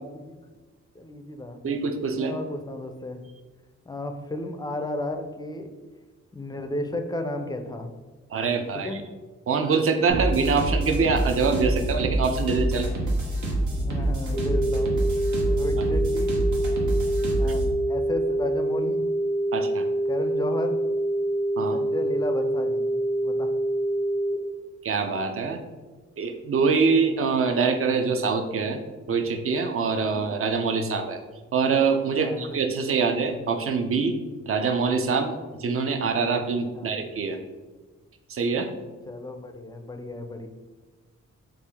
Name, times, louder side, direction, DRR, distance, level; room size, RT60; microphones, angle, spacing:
voice 1, 0.9-1.6 2.1-3.2 3.9-5.7 6.3-7.9 8.7-9.0 13.9-15.0 15.5-16.3 17.4-17.6 17.9-19.1 20.1-20.8 21.6-22.8 23.2-23.5 32.2-32.5 36.7-37.0 39.1-40.5, left 1 dB, 15° left, 6 dB, 0.4 m, -33 dB
voice 2, 1.6-2.4 8.3-8.9 9.5-12.9 17.4-17.5 19.5-19.9 21.6-21.8 24.8-25.6 26.2-28.8 29.1-31.2 31.5-34.2 34.5-37.4 38.3-38.7, right 5 dB, 50° right, 6 dB, 0.5 m, -24 dB
sound 1, 10.1-17.7, right 1 dB, 90° right, 0.9 m, -26 dB
sound 2, 14.3-24.3, right 1 dB, 70° right, 1.4 m, -26 dB
3.4 x 2.4 x 3.4 m, 1.3 s
cardioid pair, 70°, 29 cm